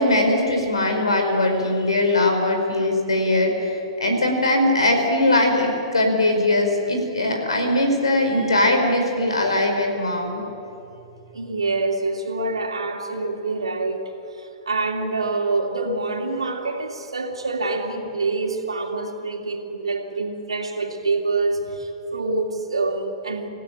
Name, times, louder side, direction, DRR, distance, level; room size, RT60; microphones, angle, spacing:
voice 1, 0.0-10.4, left 1 dB, 90° left, 4 dB, 5.0 m, -20 dB
voice 2, 11.3-23.5, right 3 dB, 90° right, 3 dB, 2.9 m, -26 dB
26.0 x 16.0 x 8.8 m, 2.8 s
hypercardioid pair, 110°, 3 cm